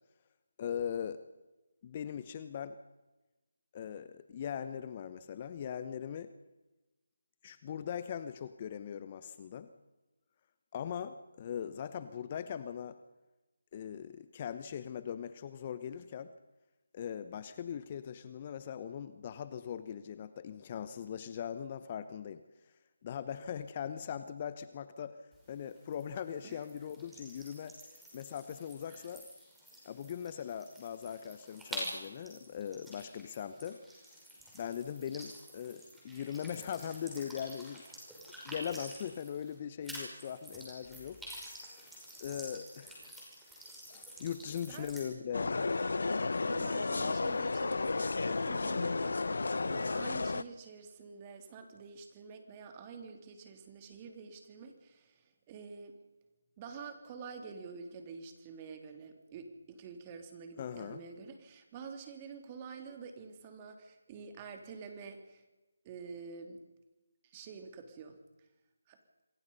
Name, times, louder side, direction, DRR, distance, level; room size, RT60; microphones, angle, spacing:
voice 1, 0.6-1.2 1.8-2.8 3.7-6.3 7.4-9.7 10.7-13.0 13.7-16.3 16.9-22.4 23.0-25.2 25.5-29.3 29.8-33.8 34.5-37.8 38.4-41.2 41.7-41.9 42.2-43.2 43.9-45.7 60.6-61.0, left 8 dB, 30° left, 13 dB, 0.9 m, -40 dB
sound 1, 25.3-39.6 39.8-45.1, equal, 5° right, 5.8 m, -49 dB
voice 2, 44.6-45.3 46.4-55.9 56.6-65.4 65.8-66.6 67.2-68.2 68.9-69.0, right 5 dB, 25° right, 6 dB, 3.1 m, -48 dB
sound 2, 45.3-50.4, left 3 dB, 65° left, 0.9 m, -32 dB
27.5 x 21.5 x 5.5 m, 1.1 s
figure-of-eight pair, 160°, 0 cm